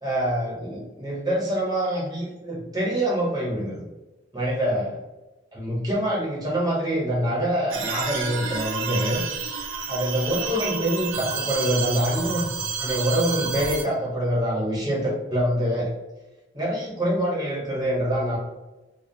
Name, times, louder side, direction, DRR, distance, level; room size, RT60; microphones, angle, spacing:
voice 1, 0.0-3.8 4.3-4.9 5.5-9.2 9.9-12.4 12.8-15.9 16.5-18.4, equal, 20° right, -5 dB, 0.9 m, -25 dB
sound 1, 7.7-13.8, right 5 dB, 85° right, 0.4 m, -30 dB
2.4 x 2.3 x 2.6 m, 1.0 s
head